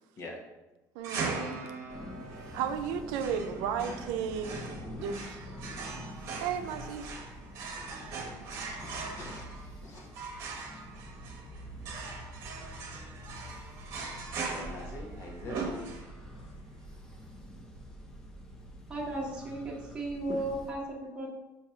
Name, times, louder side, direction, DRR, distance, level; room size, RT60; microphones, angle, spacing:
voice 1, 0.9-1.6 2.5-4.6 5.0-5.4 6.4-7.1, right 7 dB, 90° right, 7 dB, 0.6 m, -34 dB
sound 1, 1.0-16.4, right 4 dB, 45° right, 1.1 m, -40 dB
sound 2, 1.9-20.7, equal, 10° left, 0.6 m, -46 dB
voice 2, 8.8-10.1 14.5-15.7, left 2 dB, 40° left, 0 dB, 1.1 m, -44 dB
voice 3, 18.9-21.3, right 1 dB, 15° right, -4 dB, 1.2 m, -35 dB
6.3 x 2.9 x 5.6 m, 1.1 s
cardioid pair, 175°, 7 cm